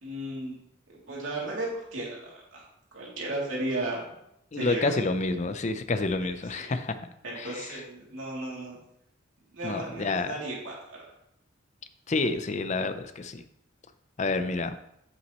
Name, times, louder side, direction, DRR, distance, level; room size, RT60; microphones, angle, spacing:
voice 1, 0.0-0.6 0.9-2.6 2.9-4.1 4.5-4.8 6.2-6.7 7.2-8.8 9.5-11.0, right 1 dB, 90° right, -4 dB, 2.8 m, -35 dB
voice 2, 4.5-7.0 7.4-7.8 9.6-10.3 12.1-13.4 14.2-14.7, left 3 dB, 35° left, 10 dB, 0.5 m, -29 dB
8.3 x 8.1 x 3.0 m, 0.77 s
head